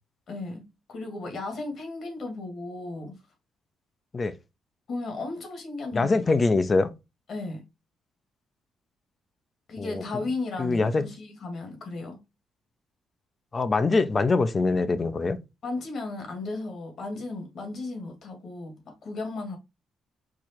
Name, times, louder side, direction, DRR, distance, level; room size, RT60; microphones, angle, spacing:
voice 1, 0.3-3.2 4.9-6.3 7.3-7.6 9.7-12.2 15.6-19.6, left 3 dB, 60° left, 1.9 m, -35 dB
voice 2, 5.9-6.9 9.8-10.0 10.6-11.0 13.5-15.4, left 3 dB, 35° left, 0.6 m, -23 dB
4.8 x 2.4 x 4.3 m
cardioid pair, 90°, 0 cm